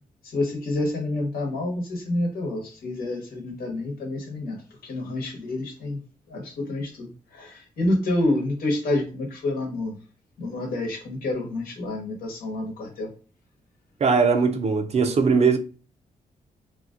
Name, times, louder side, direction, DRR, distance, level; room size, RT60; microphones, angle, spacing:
voice 1, 0.3-4.5 4.8-6.0 6.3-9.9 10.4-13.1, left 2 dB, 90° left, 1.1 m, -28 dB
voice 2, 14.0-15.6, right 5 dB, 45° right, 0.5 m, -20 dB
2.8 x 2.7 x 2.4 m
cardioid pair, 90°, 15 cm